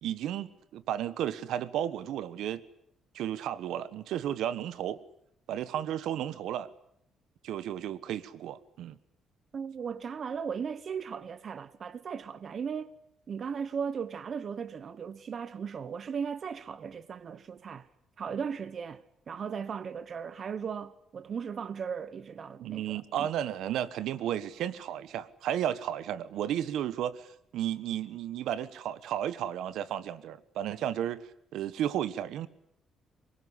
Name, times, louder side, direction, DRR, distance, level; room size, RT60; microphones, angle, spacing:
voice 1, 0.0-2.6 3.1-5.0 5.5-6.7 7.4-9.0 22.6-27.3 27.5-31.2 31.5-32.5, right 11 dB, 75° right, 1.4 m, -33 dB
voice 2, 9.5-12.9 13.3-17.9 18.2-19.0 19.3-23.3, right 6 dB, 40° right, 1.0 m, -37 dB
24.0 x 21.0 x 9.9 m
cardioid pair, 135°, 0 cm